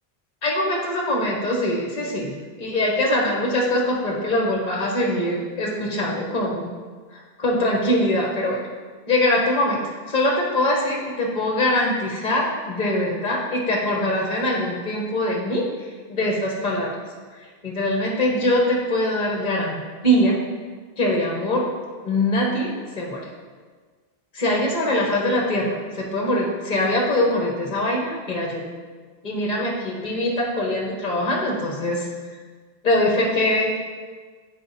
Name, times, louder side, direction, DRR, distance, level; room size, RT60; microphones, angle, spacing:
voice 1, 0.4-6.7 7.1-8.6 9.1-9.8 10.1-15.7 16.1-16.9 17.6-20.4 21.0-21.7 22.0-23.2 24.3-28.6 29.2-32.1 32.8-33.8, left 1 dB, 45° left, -2 dB, 1.3 m, -23 dB
10.5 x 4.3 x 4.1 m, 1.5 s
omnidirectional pair, 1.0 m